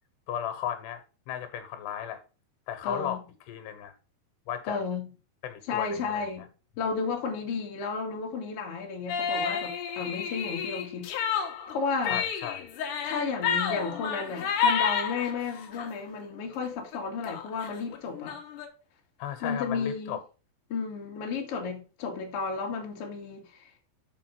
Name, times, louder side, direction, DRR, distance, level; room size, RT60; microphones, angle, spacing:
voice 1, 0.3-2.2 2.7-3.2 3.5-3.9 4.5-4.8 5.4-6.3 12.1-12.7 19.2-20.2, left 10 dB, 80° left, 3.1 m, -35 dB
voice 2, 2.8-3.2 4.7-5.1 5.7-6.5 6.8-11.1 11.7-12.2 13.0-18.4 19.4-20.2 20.7-23.7, left 5 dB, 45° left, 2.0 m, -33 dB
sound 1, 9.1-15.9 16.3-16.7 16.9-17.0 17.2-18.7, left 7 dB, 65° left, 2.2 m, -30 dB
7.0 x 4.9 x 5.8 m
omnidirectional pair, 4.9 m